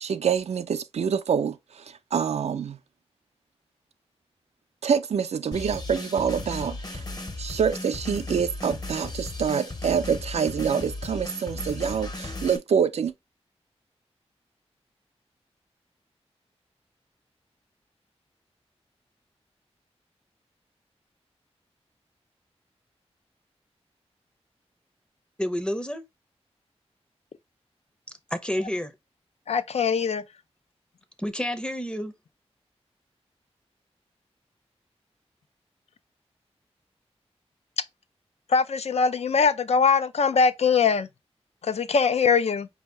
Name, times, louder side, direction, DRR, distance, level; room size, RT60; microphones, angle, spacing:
voice 1, 0.0-2.8 4.8-7.0 7.4-13.1, right 7 dB, 75° right, 0.4 m, -26 dB
sound 1, 5.5-12.6, left 2 dB, 35° left, 0.9 m, -36 dB
voice 2, 25.4-26.0 28.3-28.9 31.2-32.1, equal, 10° left, 0.6 m, -29 dB
voice 3, 29.5-30.2 38.5-41.1 41.6-42.7, left 5 dB, 70° left, 0.5 m, -22 dB
4.6 x 2.7 x 3.2 m
wide cardioid pair, 80°, 11 cm